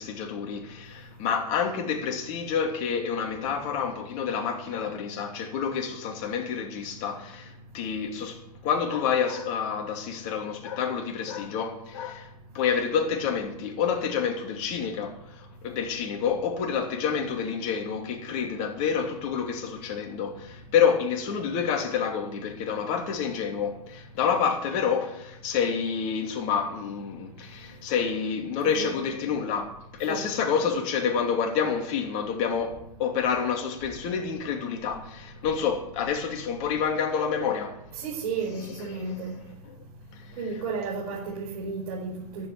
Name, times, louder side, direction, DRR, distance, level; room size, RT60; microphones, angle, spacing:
voice 1, 0.0-12.3 12.5-37.8 38.9-39.2 39.6-39.7, left 7 dB, 50° left, 3.0 m, -28 dB
voice 2, 28.6-29.0 30.1-30.2 37.9-39.4 40.4-42.5, right 4 dB, 75° right, 4.9 m, -33 dB
14.5 x 7.7 x 9.2 m
hypercardioid pair, 110°, 20 cm